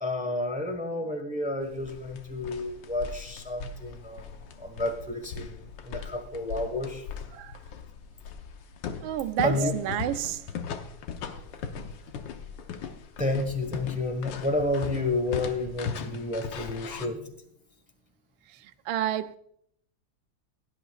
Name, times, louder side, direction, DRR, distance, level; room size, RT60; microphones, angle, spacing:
voice 1, 0.0-4.2 4.6-7.0 9.4-9.7 13.2-17.3, left 2 dB, 5° right, 1.0 m, -30 dB
sound 1, 1.6-17.1, left 6 dB, 70° left, 1.5 m, -39 dB
voice 2, 9.0-10.4 18.9-19.4, right 12 dB, 85° right, 1.4 m, -29 dB
17.0 x 10.5 x 2.4 m
omnidirectional pair, 2.1 m